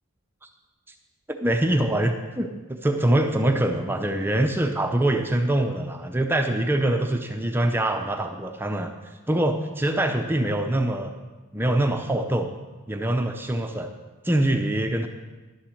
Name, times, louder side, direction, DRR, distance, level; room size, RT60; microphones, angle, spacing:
voice 1, 1.3-8.9 9.3-11.1 11.5-12.5 12.9-13.9 14.2-15.1, right 1 dB, 10° right, 5 dB, 0.5 m, -24 dB
11.0 x 7.4 x 6.4 m, 1.2 s
head